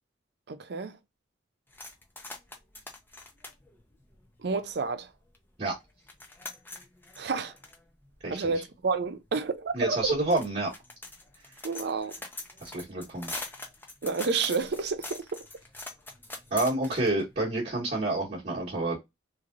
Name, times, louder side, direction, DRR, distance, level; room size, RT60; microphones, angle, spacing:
voice 1, 0.5-1.0 4.4-5.1 7.2-7.5 8.3-10.2 11.6-12.2 14.0-15.4, right 4 dB, 65° right, 0.5 m, -30 dB
sound 1, 1.7-4.9 5.3-5.4 5.7-17.3, left 2 dB, 10° left, 0.6 m, -44 dB
voice 2, 9.7-10.7 12.6-13.4 16.5-19.0, right 2 dB, 40° right, 1.2 m, -29 dB
3.1 x 2.7 x 2.5 m
head